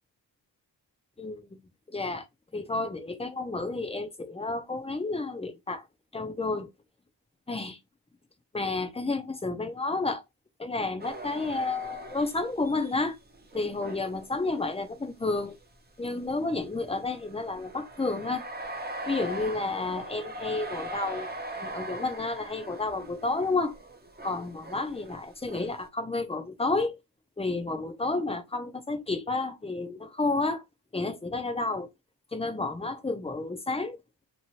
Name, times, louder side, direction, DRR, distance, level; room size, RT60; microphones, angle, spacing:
voice 1, 1.2-1.6 1.9-2.3 2.5-5.8 6.1-6.7 7.5-7.8 8.5-10.2 10.6-13.2 13.5-15.6 16.0-18.4 19.1-21.3 21.6-23.7 24.2-27.0 27.4-30.6 30.9-31.9 32.3-34.0, left 3 dB, 15° left, 0.7 m, -31 dB
sound 1, 11.0-15.1 15.6-15.7 16.6-25.9, right 1 dB, 20° right, 0.9 m, -41 dB
3.0 x 2.6 x 2.8 m
cardioid pair, 55°, 45 cm